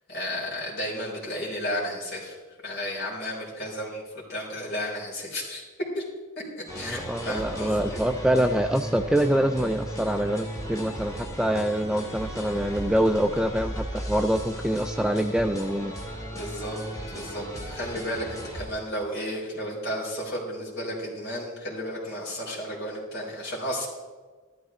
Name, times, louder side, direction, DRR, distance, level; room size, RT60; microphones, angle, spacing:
voice 1, 0.1-2.4 2.6-4.0 4.3-5.6 5.9-6.0 6.7-8.0 16.3-16.8 17.1-23.9, equal, 50° left, -5 dB, 4.5 m, -33 dB
sound 1, 6.7-18.7, equal, 15° left, 1.9 m, -36 dB
voice 2, 6.8-15.9, right 1 dB, 5° right, 7 dB, 0.3 m, -25 dB
14.0 x 13.0 x 3.6 m, 1.4 s
head